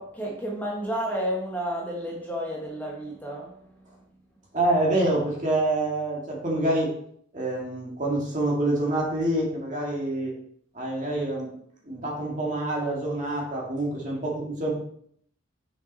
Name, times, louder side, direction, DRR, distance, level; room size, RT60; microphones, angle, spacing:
voice 1, 0.0-4.0, equal, 10° left, -3 dB, 1.2 m, -32 dB
voice 2, 4.5-6.9 7.3-10.3 10.7-11.5 11.8-14.7, right 1 dB, 35° right, -2 dB, 2.0 m, -26 dB
6.5 x 5.9 x 4.2 m, 0.66 s
head